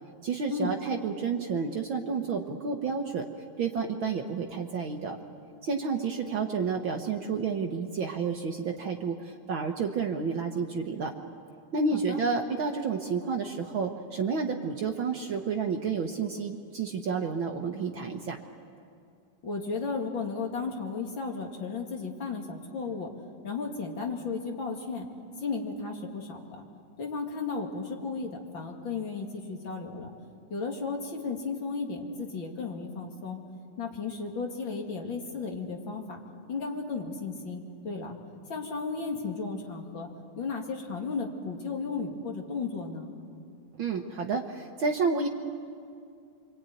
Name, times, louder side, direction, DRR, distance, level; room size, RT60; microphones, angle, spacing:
voice 1, 0.2-3.3 3.6-5.2 5.6-11.1 11.7-18.4 43.8-45.3, right 5 dB, 70° right, 3 dB, 1.1 m, -30 dB
voice 2, 19.4-23.1 23.4-25.1 25.4-26.6 27.0-30.1 30.5-33.4 33.8-36.2 36.5-38.2 38.5-40.1 40.4-43.1, left 4 dB, 40° left, 1 dB, 2.7 m, -34 dB
25.5 x 24.5 x 9.3 m, 2.3 s
omnidirectional pair, 3.9 m